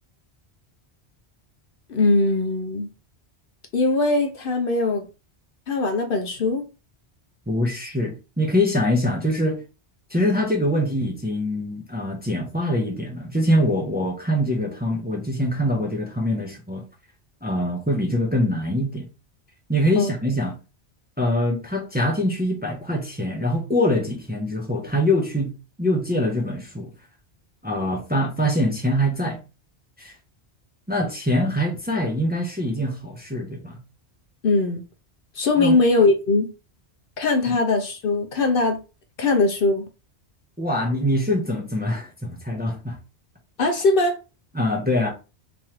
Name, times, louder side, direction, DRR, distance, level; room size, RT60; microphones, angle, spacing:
voice 1, 1.9-2.9 3.7-5.1 5.7-6.7 20.0-20.1 34.4-34.8 35.3-36.5 37.2-38.8 39.2-39.9 43.6-44.2, left 3 dB, 60° left, 0.7 m, -20 dB
voice 2, 7.5-9.6 10.1-16.8 17.4-19.1 19.7-20.5 21.2-25.5 25.8-26.9 27.6-29.4 30.0-30.1 30.9-33.8 35.6-35.8 37.5-37.6 40.6-43.0 44.5-45.1, left 1 dB, 10° right, 0.7 m, -24 dB
3.6 x 3.1 x 3.0 m
omnidirectional pair, 1.1 m